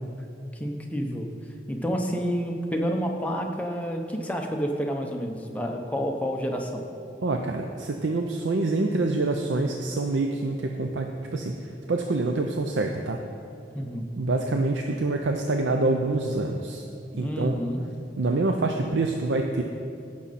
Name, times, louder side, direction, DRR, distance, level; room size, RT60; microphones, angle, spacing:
voice 1, 0.5-1.3 1.7-6.9 13.7-14.1 17.1-17.8, equal, 10° left, 2 dB, 0.7 m, -29 dB
voice 2, 7.2-13.2 14.2-16.8 17.1-17.6 18.1-19.6, right 2 dB, 90° right, 4 dB, 0.6 m, -26 dB
16.0 x 6.3 x 4.2 m, 2.7 s
head